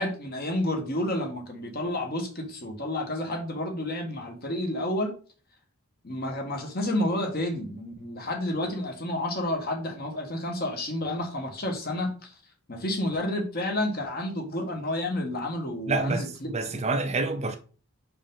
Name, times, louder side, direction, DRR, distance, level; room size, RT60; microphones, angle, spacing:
voice 1, 0.0-5.1 6.0-12.3 12.7-16.5, left 1 dB, 45° left, 1.5 m, -30 dB
voice 2, 15.9-17.6, right 3 dB, 30° right, 0.6 m, -28 dB
5.3 x 5.1 x 3.8 m
head